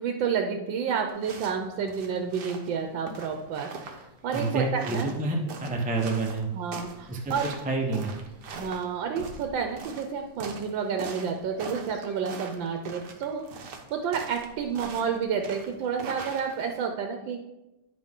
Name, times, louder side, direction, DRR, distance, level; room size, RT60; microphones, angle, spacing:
voice 1, 0.0-5.1 6.5-7.5 8.5-17.4, right 6 dB, 85° right, 4 dB, 1.4 m, -30 dB
sound 1, 1.1-16.8, right 4 dB, 65° right, 1.5 m, -42 dB
voice 2, 4.3-6.5 7.1-8.2, right 3 dB, 10° right, 0 dB, 0.5 m, -28 dB
9.8 x 6.3 x 3.7 m, 0.99 s
omnidirectional pair, 2.0 m